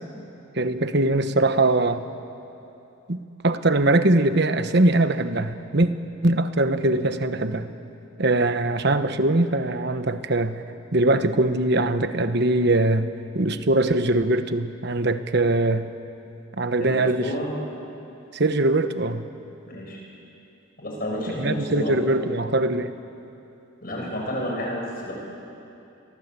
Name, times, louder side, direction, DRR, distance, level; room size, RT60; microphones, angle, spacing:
voice 1, 0.6-2.0 3.1-3.2 3.4-5.9 6.2-7.7 8.2-10.6 10.9-13.1 13.3-15.9 16.6-17.3 18.3-19.2 21.3-22.9, right 2 dB, 55° right, 10 dB, 1.2 m, -21 dB
voice 2, 16.8-17.5 19.7-20.0 20.8-22.0 23.8-25.1, equal, 45° left, -1 dB, 7.3 m, -30 dB
30.0 x 23.0 x 8.4 m, 2.8 s
head